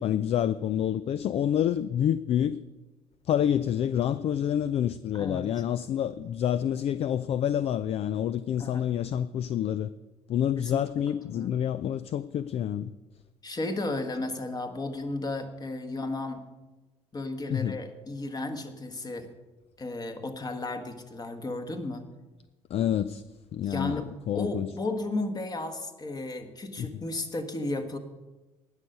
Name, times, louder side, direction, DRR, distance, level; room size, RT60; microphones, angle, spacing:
voice 1, 0.0-2.6 3.3-9.9 10.3-12.9 17.5-17.8 22.7-23.2 23.5-24.7 26.8-26.9, left 10 dB, 40° left, 16 dB, 0.4 m, -28 dB
voice 2, 5.1-5.5 8.6-9.1 10.6-11.6 13.4-16.4 17.1-19.3 19.8-22.0 23.6-24.1 24.3-28.0, left 2 dB, 25° left, 7 dB, 1.6 m, -34 dB
19.0 x 6.6 x 5.4 m, 1.1 s
figure-of-eight pair, 55°, 16 cm